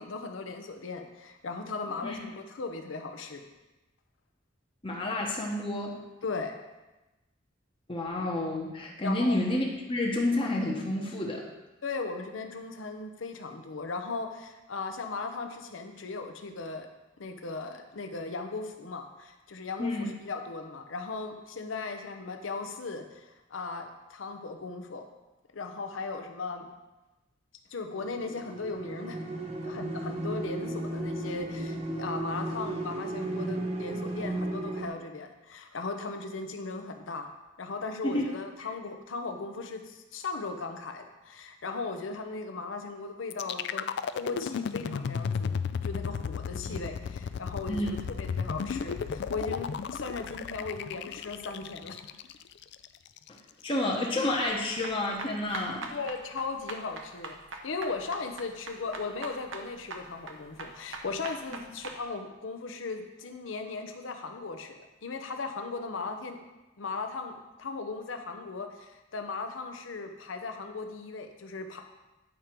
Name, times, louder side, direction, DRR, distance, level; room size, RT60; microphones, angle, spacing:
voice 1, 0.0-3.4 6.2-6.6 9.0-9.4 11.8-16.9 17.2-25.1 25.5-26.7 27.7-29.2 29.6-37.3 37.6-43.9 44.1-52.0 55.9-57.4 57.6-66.4 66.8-71.9, left 4 dB, 85° left, 5 dB, 0.7 m, -37 dB
voice 2, 4.8-6.0 7.9-11.4 19.8-20.1 38.0-38.3 46.7-46.8 47.7-47.9 53.3-55.9 61.5-61.6, left 1 dB, 30° left, -1 dB, 1.0 m, -30 dB
sound 1, 28.0-34.9, right 1 dB, 35° right, 0.9 m, -34 dB
sound 2, 43.3-53.3, left 6 dB, 60° left, 0.3 m, -34 dB
sound 3, 54.5-62.0, right 3 dB, 80° right, 0.9 m, -42 dB
9.0 x 5.1 x 4.5 m, 1.1 s
head